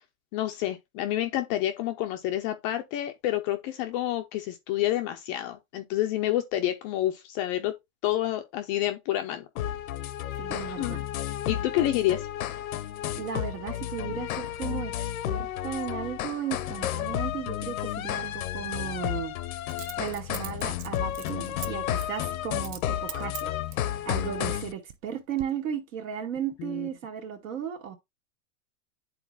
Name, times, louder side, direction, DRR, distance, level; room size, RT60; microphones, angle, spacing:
voice 1, 0.3-7.7 8.0-9.5 10.8-11.0 11.5-12.3 26.6-26.9, left 13 dB, 25° left, 0.3 m, -28 dB
sound 1, 9.6-24.7, left 12 dB, 90° left, 0.7 m, -32 dB
voice 2, 10.4-11.0 13.2-19.3 20.0-23.5 24.1-27.9, right 8 dB, 75° right, 2.0 m, -35 dB
Coin (dropping), 17.0-17.2 19.7-21.7 22.0-22.2 22.6-22.8 23.1-23.9 24.5-25.1 25.4-25.5, right 12 dB, 35° right, 0.5 m, -41 dB
10.5 x 4.0 x 2.3 m
supercardioid pair, 140°, 41 cm